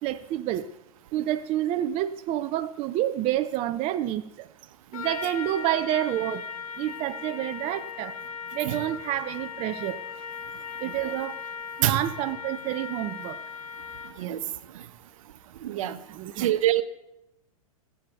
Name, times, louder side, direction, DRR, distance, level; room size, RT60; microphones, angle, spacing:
voice 1, 0.0-0.6 1.1-4.5 4.9-6.5 6.8-8.2 8.5-10.0 10.8-11.4 11.8-13.4 16.1-16.5, right 13 dB, 35° right, 10 dB, 0.6 m, -28 dB
Trumpet, 4.9-14.3, left 6 dB, 70° left, 1.9 m, -38 dB
voice 2, 15.6-16.0 16.4-16.8, right 13 dB, 65° right, 12 dB, 1.2 m, -25 dB
17.5 x 8.5 x 7.0 m, 0.88 s
hypercardioid pair, 115°, 19 cm